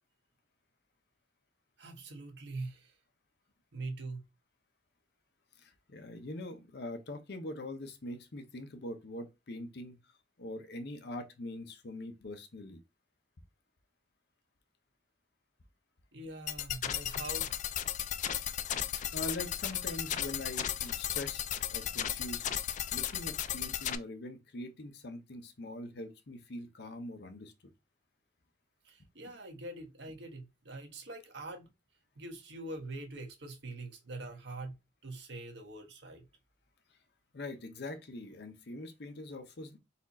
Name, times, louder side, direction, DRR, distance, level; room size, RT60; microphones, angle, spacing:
voice 1, 1.8-3.0 3.7-4.2 16.1-17.5 28.8-31.7 32.2-34.8 35.0-36.2, right 2 dB, 70° right, 1.2 m, -43 dB
voice 2, 5.6-10.0 10.4-12.8 18.9-21.4 21.7-22.5 22.9-27.7 37.3-39.8, left 1 dB, 65° left, 0.7 m, -43 dB
sound 1, 16.5-24.0, left 10 dB, 45° left, 0.3 m, -35 dB
4.2 x 2.4 x 4.1 m
head